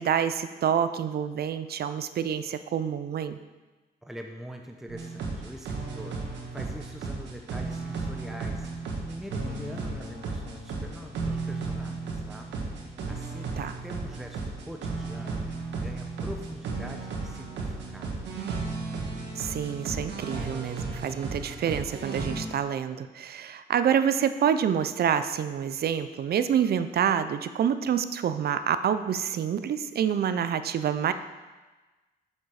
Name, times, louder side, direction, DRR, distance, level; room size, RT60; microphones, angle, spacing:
voice 1, 0.0-3.4 13.6-13.8 19.4-31.1, right 8 dB, 65° right, 11 dB, 0.5 m, -27 dB
voice 2, 4.0-12.5 13.1-15.4 15.8-18.3, equal, ahead, 3 dB, 0.8 m, -44 dB
sound 1, 4.9-22.4, right 3 dB, 90° right, 1.5 m, -34 dB
7.3 x 6.6 x 4.8 m, 1.2 s
cardioid pair, 70°, 18 cm